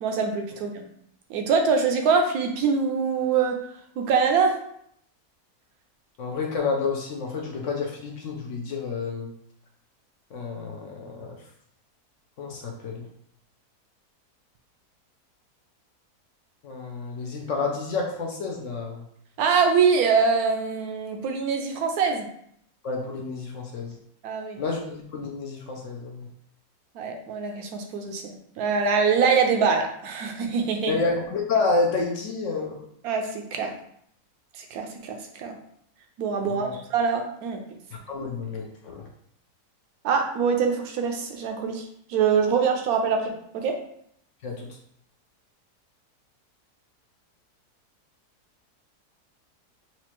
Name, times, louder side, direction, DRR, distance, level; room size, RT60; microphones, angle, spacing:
voice 1, 0.0-0.9 1.3-3.5 4.0-4.5 19.4-22.3 24.2-24.6 26.9-28.2 28.6-30.9 33.0-33.7 34.6-35.5 36.2-37.6 40.0-41.8 42.1-43.7, right 5 dB, 70° right, 3 dB, 1.0 m, -24 dB
voice 2, 6.2-9.3 10.3-11.4 12.4-13.1 16.6-19.0 22.8-24.0 24.6-26.3 30.9-32.8 36.4-36.7 38.1-39.1 44.4-44.8, left 4 dB, 65° left, 0 dB, 0.8 m, -29 dB
4.2 x 2.4 x 2.9 m, 0.69 s
omnidirectional pair, 1.7 m